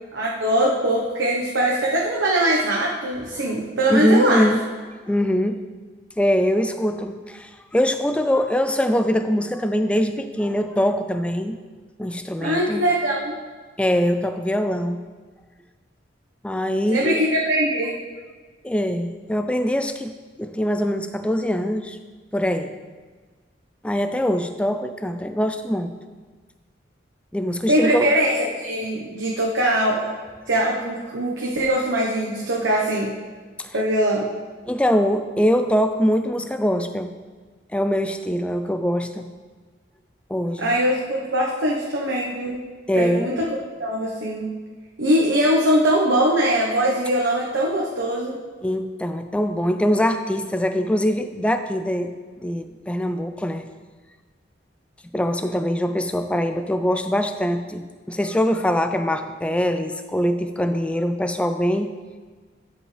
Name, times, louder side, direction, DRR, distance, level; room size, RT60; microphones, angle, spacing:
voice 1, 0.1-4.5 12.4-13.3 16.9-17.9 27.7-30.1 30.5-33.1 33.7-34.3 40.6-42.6 42.9-43.5 43.8-44.4 45.0-48.3, right 1 dB, 85° right, -3 dB, 1.0 m, -21 dB
voice 2, 3.9-4.6 5.1-5.6 6.2-11.6 12.0-12.9 13.8-15.0 16.4-17.2 18.6-20.1 20.4-22.0 22.3-22.7 23.8-25.9 27.3-28.1 33.6-33.7 34.7-37.1 37.7-39.3 40.3-40.7 42.9-43.3 48.6-52.1 52.4-53.7 55.1-61.9, equal, 5° left, 8 dB, 0.3 m, -23 dB
13.0 x 5.2 x 3.3 m, 1.4 s
head